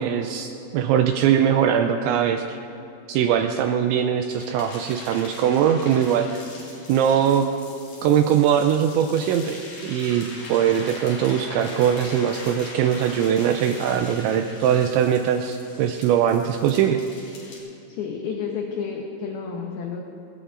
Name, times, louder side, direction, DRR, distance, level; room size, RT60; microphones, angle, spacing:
voice 1, 0.0-2.6 3.1-6.4 6.9-7.5 8.0-17.0, right 9 dB, 80° right, 6 dB, 2.8 m, -21 dB
sound 1, 4.4-17.6, left 2 dB, 45° left, 4.8 m, -41 dB
voice 2, 17.9-20.0, left 6 dB, 80° left, 0 dB, 2.3 m, -30 dB
26.5 x 14.5 x 2.5 m, 2.6 s
omnidirectional pair, 5.5 m